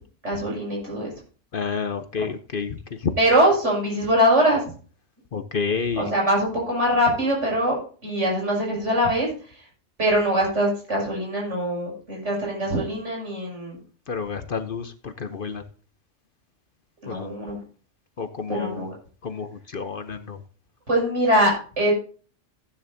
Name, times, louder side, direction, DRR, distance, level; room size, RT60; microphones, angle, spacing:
voice 1, 0.2-1.1 2.2-2.3 3.2-4.6 6.0-9.3 10.0-13.8 17.0-17.6 18.5-18.9 20.9-21.9, equal, 70° right, -3 dB, 7.0 m, -22 dB
voice 2, 1.5-3.1 5.3-6.1 14.1-15.6 17.1-17.3 18.2-18.9 19.2-20.4, left 5 dB, 50° left, 9 dB, 0.9 m, -29 dB
15.5 x 10.0 x 2.7 m, 0.40 s
omnidirectional pair, 1.3 m